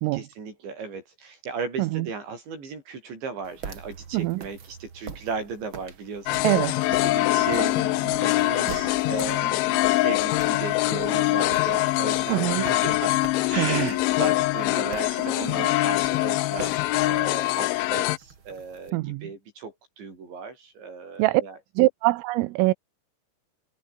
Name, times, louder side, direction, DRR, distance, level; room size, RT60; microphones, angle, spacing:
voice 1, 0.1-6.4 7.0-13.2 13.5-21.6, right 5 dB, 60° right, 10.0 m, -36 dB
sound 1, 3.4-18.9, right 6 dB, 40° right, 1.9 m, -44 dB
voice 2, 4.1-4.4 6.4-6.9 12.3-12.7 13.6-13.9 18.9-19.3 21.2-21.4 21.8-22.7, right 20 dB, 90° right, 3.5 m, -23 dB
sound 2, 6.3-18.2, left 20 dB, 80° left, 3.0 m, -24 dB
sound 3, 6.7-15.8, right 2 dB, 15° right, 5.1 m, -42 dB
omnidirectional pair, 5.7 m